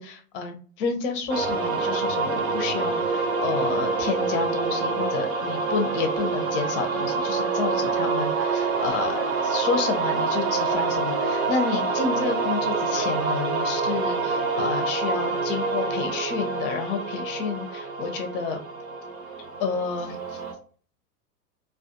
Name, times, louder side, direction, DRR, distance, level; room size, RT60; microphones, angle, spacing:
voice 1, 0.0-18.6 19.6-20.4, left 5 dB, 35° left, 5 dB, 0.6 m, -30 dB
sound 1, 1.3-20.5, right 4 dB, 55° right, 0.9 m, -26 dB
2.4 x 2.3 x 2.4 m, 0.44 s
figure-of-eight pair, 100°, 49 cm